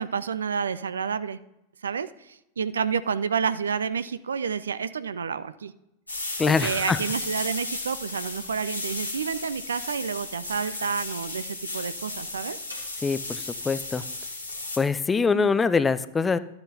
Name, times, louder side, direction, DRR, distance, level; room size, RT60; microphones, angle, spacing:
voice 1, 0.0-1.4 1.8-5.7 6.5-12.6 15.2-15.5, right 6 dB, 70° right, 15 dB, 0.4 m, -29 dB
sound 1, 6.1-14.8, left 2 dB, 85° left, 2.1 m, -34 dB
voice 2, 6.4-7.0 13.0-14.0 14.8-16.4, left 5 dB, 15° left, 15 dB, 0.4 m, -24 dB
12.5 x 8.7 x 2.8 m, 0.85 s
figure-of-eight pair, 90°, 0 cm